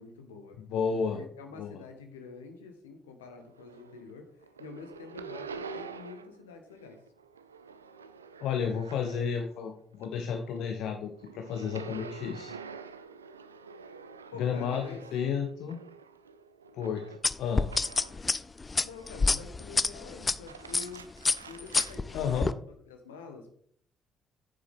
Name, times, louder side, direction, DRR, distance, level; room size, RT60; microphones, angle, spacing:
voice 1, 0.0-0.6 0.9-7.0 14.3-15.0 18.8-21.1 21.4-23.5, left 4 dB, 75° left, 5 dB, 1.2 m, -47 dB
voice 2, 0.7-1.2 1.6-1.7 8.4-12.5 14.4-14.8 15.1-15.8 16.7-17.7 22.1-22.5, left 6 dB, 60° left, 4 dB, 0.8 m, -32 dB
sound 1, 3.4-4.1 4.4-6.4 6.7-9.6 9.9-18.3 18.7-19.4 20.3-22.0, right 5 dB, 85° right, 0.3 m, -47 dB
sound 2, 17.2-20.3 20.7-21.0 21.2-22.5, left 3 dB, 25° left, 0.5 m, -27 dB
9.1 x 7.4 x 3.6 m, 0.62 s
figure-of-eight pair, 45°, 0 cm